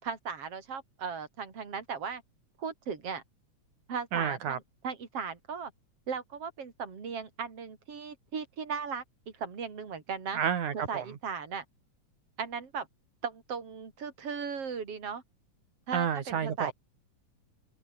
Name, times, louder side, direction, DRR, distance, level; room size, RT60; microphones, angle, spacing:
voice 1, 0.0-2.2 2.6-3.2 3.9-5.7 6.1-10.4 10.9-11.6 12.4-12.9 13.2-15.2 15.9-16.7, right 6 dB, 50° right, 4.6 m, -37 dB
voice 2, 4.1-4.6 10.3-11.1 15.9-16.7, right 8 dB, 85° right, 3.8 m, -30 dB
open air
omnidirectional pair, 3.4 m